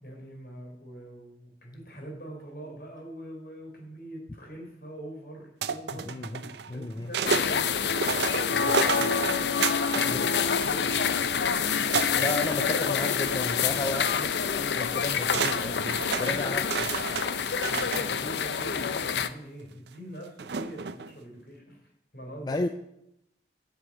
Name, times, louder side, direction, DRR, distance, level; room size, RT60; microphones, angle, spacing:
voice 1, 0.0-6.2 6.7-9.3 9.9-12.4 16.1-22.6, right 1 dB, 55° left, 0 dB, 3.5 m, -44 dB
sound 1, 5.6-7.5 7.9-10.1 10.4-11.3 11.9-13.3 13.7-13.9 14.9-15.0 15.3-18.1 18.9-19.0 20.4-21.1, right 6 dB, 70° right, 0.5 m, -31 dB
voice 2, 5.9-7.1 10.0-10.5 12.2-16.6 22.4-22.7, left 2 dB, 25° left, 7 dB, 0.3 m, -34 dB
sound 2, 7.3-19.3, left 6 dB, 75° left, 0.5 m, -27 dB
11.0 x 4.7 x 7.5 m, 0.81 s
head